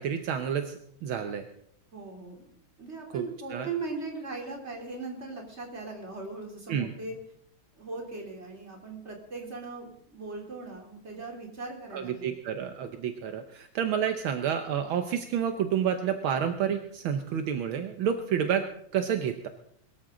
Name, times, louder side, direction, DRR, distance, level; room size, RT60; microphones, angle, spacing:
voice 1, 0.0-1.5 3.1-3.2 3.5-3.7 6.7-6.9 11.9-18.7 18.9-19.5, right 8 dB, 75° right, 7 dB, 1.7 m, -29 dB
voice 2, 1.9-2.5 2.8-7.1 7.8-12.3, right 3 dB, 30° right, 0 dB, 3.6 m, -39 dB
22.0 x 13.5 x 3.8 m, 0.68 s
omnidirectional pair, 2.3 m